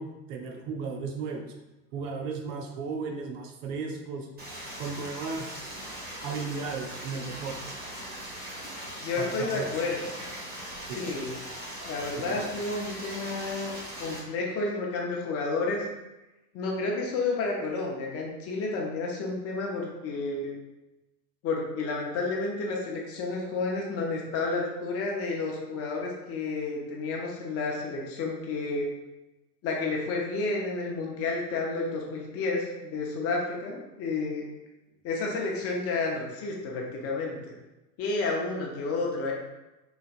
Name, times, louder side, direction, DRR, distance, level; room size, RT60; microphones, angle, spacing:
voice 1, 0.0-1.5 1.9-4.3 4.8-5.8 6.2-7.6 9.2-9.6 10.9-11.1 12.2-12.6, right 4 dB, 50° right, 2 dB, 0.7 m, -35 dB
Stream, 4.4-14.2, right 1 dB, 20° right, 1.3 m, -40 dB
voice 2, 9.0-10.2 10.9-11.3 11.8-13.7 14.0-15.9 16.5-20.5 21.4-28.9 29.6-34.4 35.0-37.5 38.0-39.3, left 3 dB, 30° left, -1 dB, 0.7 m, -31 dB
3.8 x 3.2 x 2.4 m, 1.0 s
hypercardioid pair, 100°, 49 cm